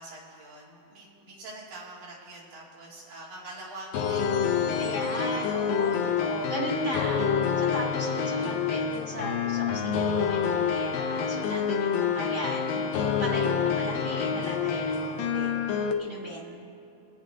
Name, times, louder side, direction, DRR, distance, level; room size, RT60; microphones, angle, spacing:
voice 1, 0.0-4.7 8.0-8.7, right 2 dB, 70° right, -5 dB, 4.4 m, -45 dB
sound 1, 3.9-15.9, left 6 dB, 80° left, 2.5 m, -27 dB
voice 2, 4.8-7.2 7.6-15.5 16.0-16.6, equal, 55° right, -4 dB, 0.6 m, -36 dB
25.5 x 9.3 x 3.7 m, 2.9 s
omnidirectional pair, 4.1 m